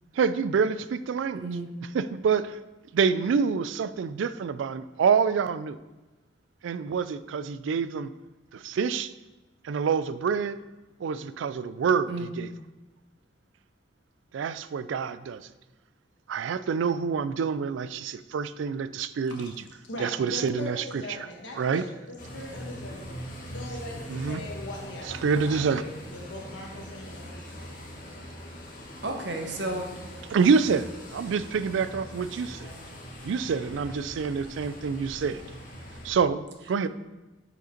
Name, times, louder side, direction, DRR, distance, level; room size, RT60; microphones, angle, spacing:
voice 1, 0.1-1.4 1.9-2.6 2.9-5.8 6.6-8.1 8.5-9.1 9.6-10.6 11.0-12.5 14.3-15.4 16.3-19.5 20.0-21.0 21.6-21.8 24.1-24.4 25.2-25.8 30.3-32.7 33.2-35.4 36.0-36.9, right 6 dB, 85° right, 14 dB, 0.3 m, -27 dB
voice 2, 1.3-1.7 12.1-12.3 29.0-29.9 36.8-36.9, right 2 dB, 70° right, 3 dB, 1.0 m, -32 dB
voice 3, 19.9-27.9 32.5-32.9, left 1 dB, 75° left, -1 dB, 1.2 m, -41 dB
sound 1, 22.2-36.1, equal, 45° left, 1.3 m, -42 dB
6.5 x 5.0 x 4.3 m, 1.1 s
head